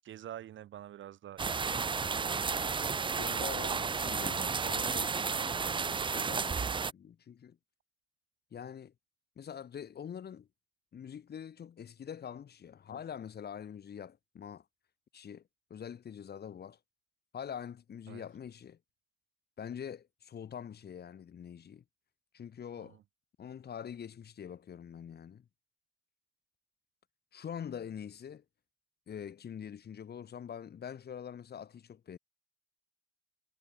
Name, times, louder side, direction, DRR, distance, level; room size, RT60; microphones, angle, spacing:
voice 1, 0.0-3.2 18.1-18.2 22.8-23.0, right 12 dB, 75° right, 7.4 m, -49 dB
sound 1, 1.4-6.9, right 5 dB, 25° right, 0.6 m, -32 dB
voice 2, 3.2-7.6 8.5-8.9 9.4-10.5 10.9-14.6 15.1-15.4 15.7-16.8 17.3-18.8 19.6-21.8 22.3-23.0 23.4-25.4 27.3-28.4 29.1-32.2, left 8 dB, 55° left, 3.6 m, -44 dB
cardioid pair, 90°, 20 cm